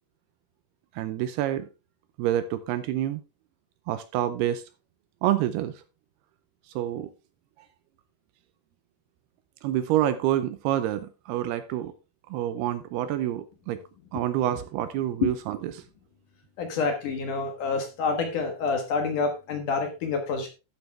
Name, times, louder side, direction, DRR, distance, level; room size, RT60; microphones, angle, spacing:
voice 1, 0.9-1.7 2.2-3.2 3.9-4.6 5.2-5.8 6.8-7.1 9.6-11.9 12.3-13.8 14.1-15.8, right 12 dB, 80° right, 2.5 m, -27 dB
voice 2, 16.6-20.5, left 4 dB, 60° left, 2.4 m, -27 dB
12.5 x 7.9 x 3.3 m
omnidirectional pair, 5.0 m